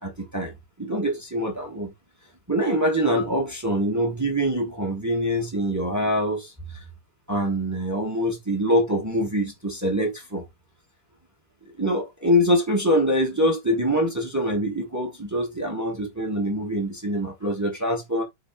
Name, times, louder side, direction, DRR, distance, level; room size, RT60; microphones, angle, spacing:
voice 1, 0.0-0.5 0.8-1.9 2.5-6.5 7.3-10.4 11.8-18.2, equal, 10° right, 1.1 m, -24 dB
6.5 x 4.4 x 4.7 m
omnidirectional pair, 4.2 m